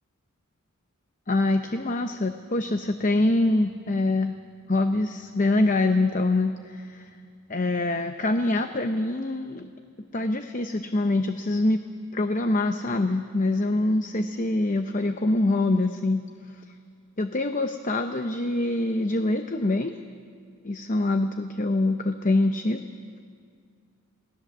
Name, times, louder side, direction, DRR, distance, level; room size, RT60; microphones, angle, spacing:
voice 1, 1.3-4.3 4.7-7.1 7.5-9.7 10.1-11.8 12.1-16.2 17.2-20.0 20.6-22.8, left 2 dB, 35° left, 7 dB, 0.7 m, -24 dB
28.0 x 18.5 x 7.2 m, 2.2 s
head